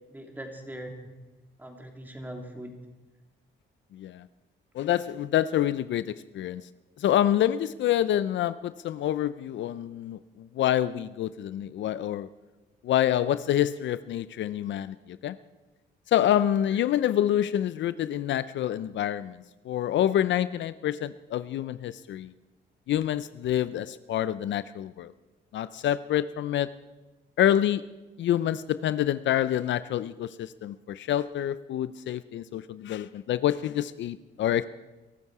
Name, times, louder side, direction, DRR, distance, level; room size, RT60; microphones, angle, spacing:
voice 1, 0.1-1.1 1.6-2.7 16.7-16.8, right 1 dB, 10° right, 2 dB, 3.0 m, -41 dB
voice 2, 3.9-4.2 4.7-6.6 7.0-12.3 12.8-15.0 15.2-15.3 16.1-19.4 19.7-22.3 22.9-25.1 25.5-26.7 27.4-27.8 28.2-34.6, left 11 dB, 70° left, 15 dB, 0.5 m, -27 dB
22.0 x 12.5 x 4.8 m, 1.1 s
cardioid pair, 90°, 20 cm